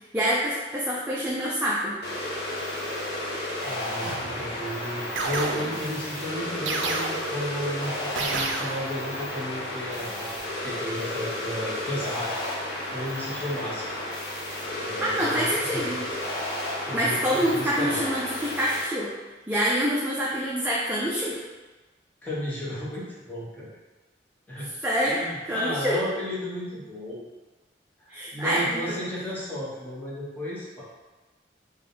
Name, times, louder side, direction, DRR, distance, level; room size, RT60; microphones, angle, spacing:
voice 1, 0.1-2.0 15.0-16.0 16.7-19.1 19.5-21.4 24.8-26.0 28.1-28.9, equal, 10° right, -7 dB, 0.4 m, -26 dB
sound 1, 2.0-18.8, left 1 dB, 55° left, 0.9 m, -32 dB
voice 2, 3.6-10.3 10.6-12.3 12.6-13.9 14.8-16.0 16.5-18.0 22.2-23.7 24.5-24.7 25.0-27.2 28.1-30.8, equal, 10° left, -8 dB, 0.8 m, -34 dB
sound 2, 4.0-4.5 5.2-6.0 6.7-7.5 8.2-9.0, right 3 dB, 90° right, 0.4 m, -31 dB
3.4 x 2.2 x 3.8 m, 1.2 s
head